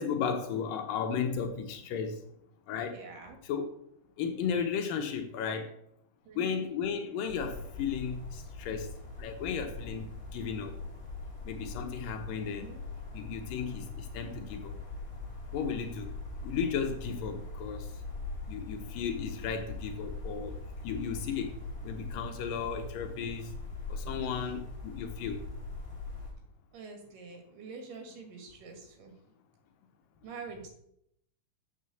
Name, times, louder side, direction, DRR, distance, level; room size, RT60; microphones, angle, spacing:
voice 1, 0.0-2.2 2.7-3.0 3.4-3.7 4.2-5.7 6.3-8.9 9.2-10.8 11.4-12.8 13.1-14.8 15.5-16.1 16.4-18.0 18.5-21.6 21.8-23.5 23.9-25.5, left 6 dB, 85° left, 2.6 m, -35 dB
voice 2, 2.9-3.4 6.3-6.6 12.5-12.8 24.2-24.3 26.7-29.1 30.2-30.7, right 4 dB, 75° right, 3.5 m, -46 dB
sound 1, 7.3-26.3, left 3 dB, 35° left, 3.2 m, -41 dB
7.6 x 6.2 x 6.9 m
omnidirectional pair, 3.9 m